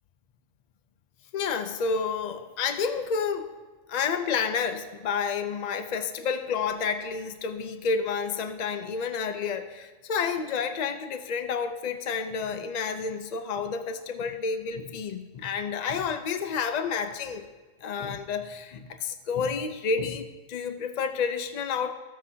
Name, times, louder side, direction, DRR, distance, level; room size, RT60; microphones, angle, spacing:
voice 1, 1.3-3.5 3.9-17.4 17.8-21.9, left 5 dB, 80° left, 8 dB, 0.3 m, -30 dB
14.0 x 7.5 x 2.7 m, 1.3 s
omnidirectional pair, 1.3 m